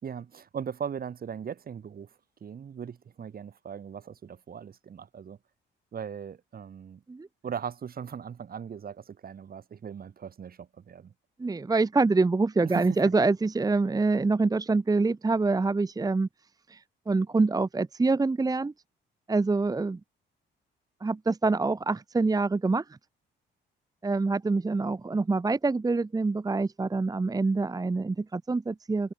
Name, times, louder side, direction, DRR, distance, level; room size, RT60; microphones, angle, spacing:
voice 1, 0.0-5.4 5.9-7.0 7.4-11.1 12.6-13.0, right 7 dB, 50° right, 2.3 m, -39 dB
voice 2, 11.4-16.3 16.7-18.7 19.3-20.0 21.0-22.8 24.0-29.1, right 3 dB, 20° right, 0.9 m, -25 dB
cardioid pair, 90°, 20 cm